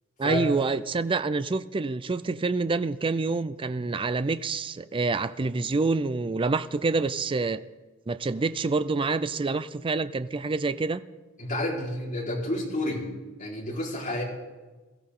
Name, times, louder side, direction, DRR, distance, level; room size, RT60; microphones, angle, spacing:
voice 1, 0.2-7.6 8.1-11.0, right 3 dB, 25° right, 13 dB, 0.4 m, -27 dB
voice 2, 11.4-13.0 13.4-14.2, left 1 dB, 35° left, -3 dB, 4.3 m, -30 dB
22.5 x 14.5 x 3.8 m, 1.2 s
head